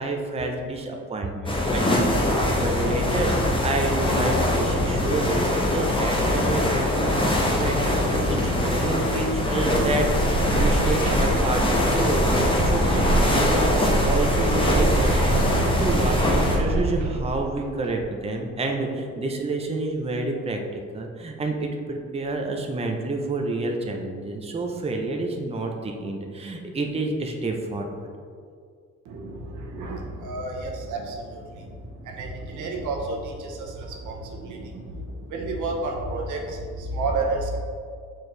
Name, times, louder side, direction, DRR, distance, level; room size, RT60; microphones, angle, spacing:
voice 1, 0.0-10.1 10.4-28.1, right 2 dB, 20° right, 2 dB, 0.6 m, -29 dB
sound 1, 1.5-16.6, left 1 dB, 15° left, 1.1 m, -23 dB
sound 2, 9.8-18.1, right 2 dB, 60° right, 0.8 m, -26 dB
voice 2, 29.1-31.4 32.1-35.0 35.3-37.6, right 2 dB, 80° right, 0 dB, 1.0 m, -30 dB
6.4 x 4.5 x 3.2 m, 2.2 s
cardioid pair, 90°, 30 cm